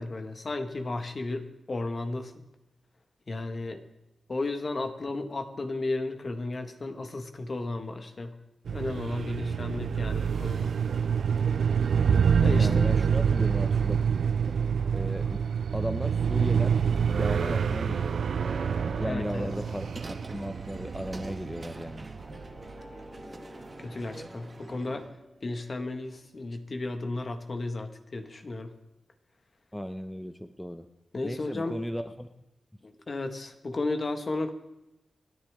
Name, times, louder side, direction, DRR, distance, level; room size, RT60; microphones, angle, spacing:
voice 1, 0.0-2.3 3.3-3.8 4.3-8.3 8.7-10.7 12.4-12.9 19.0-19.5 23.8-25.1 25.4-28.7 31.1-31.8 32.8-34.5, left 2 dB, 50° left, 6 dB, 1.7 m, -34 dB
sound 1, 8.7-22.7, right 7 dB, 80° right, 0.5 m, -27 dB
sound 2, 10.4-12.9 14.6-16.4 17.8-20.5 21.9-26.4, left 1 dB, 30° left, 2.8 m, -50 dB
voice 2, 12.6-14.0 14.5-14.6 14.9-15.4 15.7-16.8 17.1-18.2 18.8-22.1 29.7-30.9 31.2-32.3, equal, 5° left, 8 dB, 0.8 m, -36 dB
sound 3, 19.4-25.1, right 3 dB, 40° right, 1.3 m, -46 dB
29.0 x 10.0 x 3.7 m, 0.91 s
cardioid pair, 65°, 0 cm